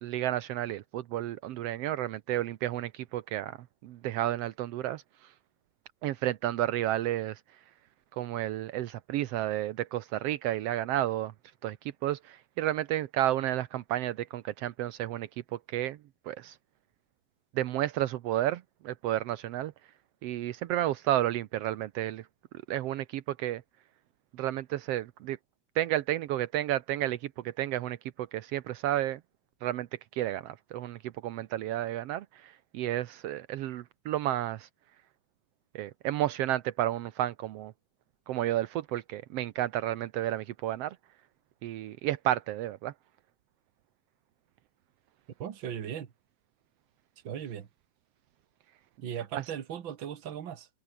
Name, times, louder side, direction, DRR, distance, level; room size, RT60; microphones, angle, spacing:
voice 1, 0.0-3.6 3.8-5.3 6.0-7.6 8.1-11.3 11.6-16.0 16.2-16.6 17.5-19.7 20.2-22.3 22.7-23.6 24.3-25.4 25.7-29.2 29.6-29.9 30.1-34.7 35.7-37.7 38.3-41.0 41.6-42.9 49.3-49.4, right 13 dB, 75° right, 1.4 m, -31 dB
voice 2, 45.4-46.1 47.2-47.7 49.0-50.7, right 9 dB, 45° right, 1.8 m, -37 dB
omnidirectional pair, 3.8 m